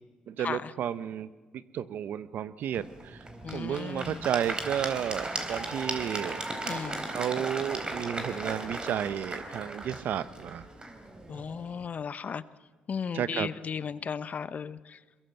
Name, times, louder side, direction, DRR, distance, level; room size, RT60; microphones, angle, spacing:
voice 1, 0.3-1.3 1.5-3.2 3.5-6.4 7.1-10.7 13.1-13.5, right 9 dB, 70° right, 14 dB, 0.9 m, -32 dB
Applause / Crowd, 2.7-11.8, right 2 dB, 30° right, 4.0 m, -37 dB
voice 2, 3.4-4.3 6.6-7.1 11.3-12.4 12.9-15.0, left 6 dB, 50° left, 15 dB, 0.9 m, -35 dB
22.5 x 22.0 x 7.9 m, 1.3 s
supercardioid pair, 65°, 3 cm